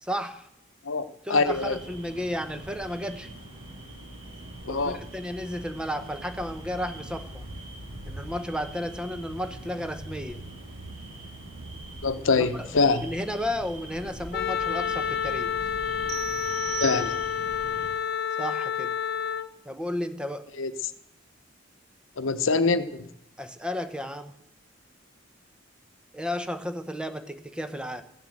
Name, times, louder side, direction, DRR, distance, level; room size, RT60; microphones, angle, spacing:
voice 1, 0.0-0.5 1.2-3.3 4.7-7.5 8.1-10.4 12.5-15.6 18.4-18.9 19.6-20.5 23.4-24.3 26.1-28.0, equal, 5° right, 9 dB, 0.9 m, -33 dB
voice 2, 0.9-1.8 4.6-5.0 12.0-13.1 16.8-17.2 20.6-20.7 22.2-23.0, left 4 dB, 90° left, 11 dB, 0.9 m, -24 dB
sound 1, 1.4-17.9, right 1 dB, 85° right, 6.6 m, -42 dB
Wind instrument woodwind instrument, 14.3-19.5, left 8 dB, 55° left, 0.8 m, -29 dB
sound 2, 16.1-17.6, right 10 dB, 60° right, 0.9 m, -37 dB
14.5 x 7.5 x 7.8 m, 0.80 s
head